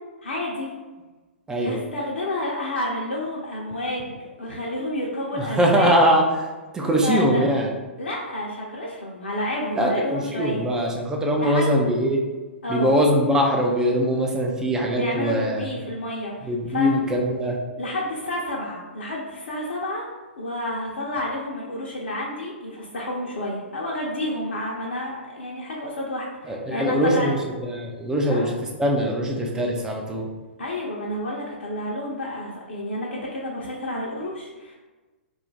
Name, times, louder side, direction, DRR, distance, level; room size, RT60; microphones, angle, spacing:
voice 1, 0.2-0.7 1.6-5.9 7.0-7.5 8.0-10.7 11.4-11.8 12.6-13.0 14.9-16.9 17.8-20.1 20.4-27.4 28.3-28.5 30.6-34.8, left 1 dB, 65° left, -4 dB, 0.5 m, -30 dB
voice 2, 1.5-1.8 5.4-6.2 6.7-7.7 9.8-12.2 12.7-15.6 16.4-17.6 26.5-27.4 27.7-30.3, equal, 10° right, 0 dB, 0.4 m, -22 dB
2.3 x 2.1 x 3.8 m, 1.2 s
figure-of-eight pair, 115°, 7 cm